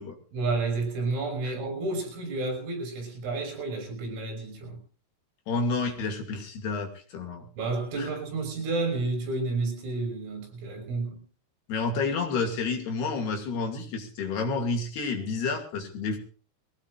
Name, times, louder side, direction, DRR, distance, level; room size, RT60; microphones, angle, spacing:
voice 1, 0.3-4.8 7.6-11.2, right 3 dB, 85° right, 8.8 m, -31 dB
voice 2, 5.5-7.5 8.0-8.1 11.7-16.2, left 4 dB, 55° left, 4.3 m, -30 dB
23.0 x 17.5 x 2.6 m
omnidirectional pair, 5.7 m